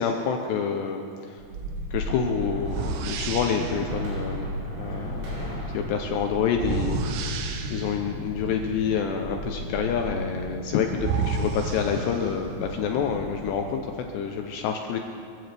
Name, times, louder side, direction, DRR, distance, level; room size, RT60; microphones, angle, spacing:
voice 1, 0.0-1.4 1.9-7.4 7.7-15.0, left 6 dB, 85° left, 4 dB, 2.4 m, -28 dB
sound 1, 1.4-13.8 14.0-14.1, equal, 30° right, 4.2 m, -36 dB
sound 2, 1.7-1.9 2.6-3.9 6.5-8.1 10.4-10.5 10.9-12.6, right 5 dB, 90° right, 3.8 m, -31 dB
sound 3, 1.8-7.9, equal, 70° right, 7.1 m, -40 dB
26.5 x 15.0 x 3.4 m, 2.5 s
omnidirectional pair, 5.9 m